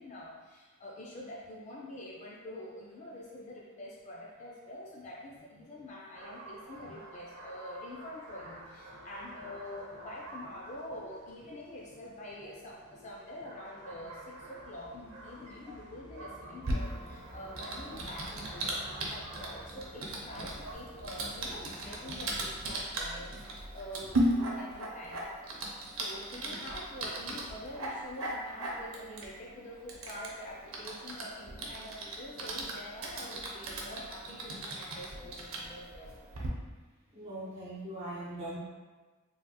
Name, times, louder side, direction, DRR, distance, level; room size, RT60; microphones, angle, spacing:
voice 1, 0.0-25.2 25.9-36.1, left 1 dB, 35° left, -3 dB, 0.3 m, -46 dB
sound 1, 6.1-20.8, right 2 dB, 85° right, 0.9 m, -50 dB
sound 2, 8.3-22.6, equal, 85° left, 1.2 m, -54 dB
Typing, 16.6-36.5, right 1 dB, 70° right, 0.5 m, -37 dB
voice 2, 37.1-38.6, right 1 dB, 30° right, -9 dB, 1.3 m, -40 dB
3.2 x 2.9 x 2.2 m, 1.3 s
head